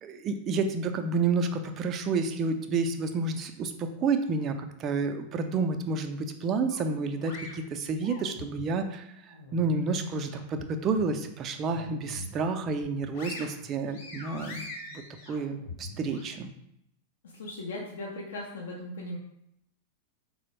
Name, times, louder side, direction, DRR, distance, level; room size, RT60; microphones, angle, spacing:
voice 1, 0.0-14.7 14.9-15.0 15.3-16.5, right 4 dB, 30° right, 6 dB, 0.4 m, -30 dB
sound 1, 6.7-8.7 9.1-10.6 11.0-11.1 11.6-12.4 12.8-16.2, left 3 dB, 45° left, 0.9 m, -43 dB
voice 2, 17.2-19.2, left 1 dB, 60° left, -2 dB, 0.5 m, -38 dB
4.1 x 2.0 x 2.9 m, 0.77 s
figure-of-eight pair, 90°, 0 cm